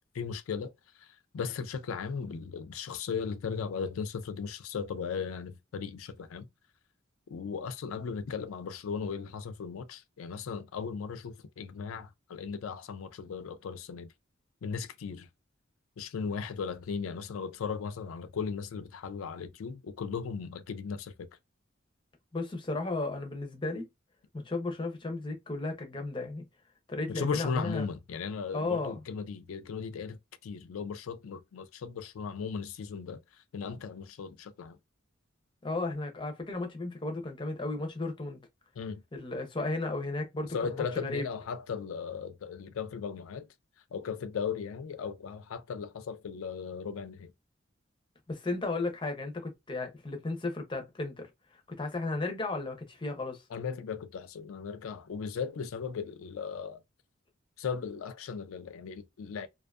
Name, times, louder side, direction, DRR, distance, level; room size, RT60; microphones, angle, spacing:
voice 1, 0.1-0.7 1.0-6.5 7.3-14.1 14.6-15.3 16.0-21.3 27.1-33.2 33.5-34.8 38.8-39.0 40.5-43.5 43.9-47.3 53.5-56.8 57.6-59.5, left 6 dB, 90° left, 0.4 m, -37 dB
voice 2, 22.3-23.8 24.3-26.4 26.9-27.8 28.5-29.0 35.6-38.4 39.1-41.2 48.3-53.4, left 2 dB, 25° left, 0.5 m, -34 dB
2.5 x 2.3 x 2.3 m
head